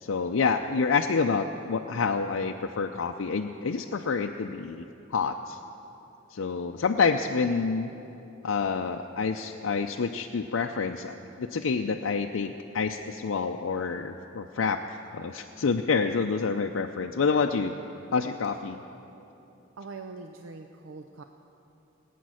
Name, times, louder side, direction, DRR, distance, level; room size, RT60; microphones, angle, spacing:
voice 1, 0.0-5.6 6.3-7.9 8.4-17.8 18.1-18.8, left 5 dB, 75° left, 3 dB, 0.5 m, -28 dB
voice 2, 19.8-21.2, right 3 dB, 75° right, 6 dB, 0.6 m, -42 dB
19.0 x 9.2 x 6.3 m, 3.0 s
head